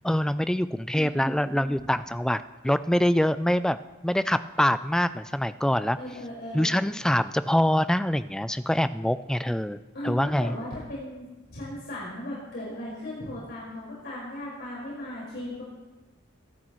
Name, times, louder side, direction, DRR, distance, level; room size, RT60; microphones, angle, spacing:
voice 1, 0.0-3.8 4.0-6.0 6.5-9.8 10.0-10.6, equal, 5° left, 13 dB, 0.3 m, -25 dB
voice 2, 0.9-1.9 6.0-6.8 9.9-15.6, left 1 dB, 55° left, -6 dB, 5.1 m, -37 dB
23.0 x 12.5 x 3.1 m, 1.1 s
head